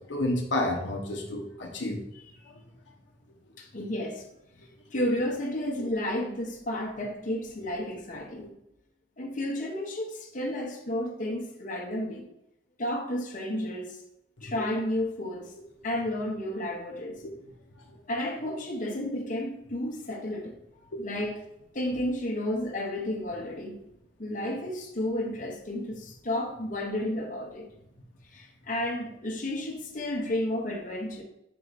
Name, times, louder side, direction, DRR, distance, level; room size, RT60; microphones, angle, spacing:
voice 1, 0.0-2.0 2.5-2.6 6.0-6.2 14.4-14.7 16.4-16.5 17.2-17.3 17.9-18.0 20.9-21.3, left 1 dB, 80° left, 1.0 m, -31 dB
voice 2, 3.6-4.3 4.9-8.5 9.2-12.3 12.8-14.0 14.4-15.5 15.8-17.2 18.1-20.5 21.0-21.4 21.7-23.8 24.2-27.6 28.3-31.2, left 1 dB, 45° left, 1.1 m, -32 dB
5.7 x 4.8 x 4.1 m
head